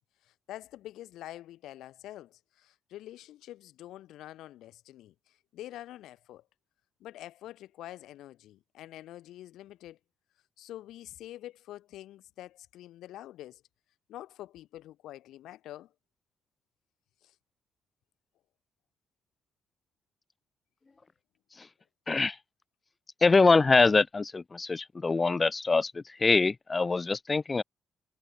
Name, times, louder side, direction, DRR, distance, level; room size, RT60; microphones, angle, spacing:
voice 1, 0.2-6.4 7.0-10.0 10.6-13.6 14.1-15.9 17.2-17.4, left 14 dB, 85° left, 5.1 m, -46 dB
voice 2, 22.1-22.4 23.2-27.6, left 4 dB, 25° left, 1.4 m, -24 dB
cardioid pair, 90°, 0 cm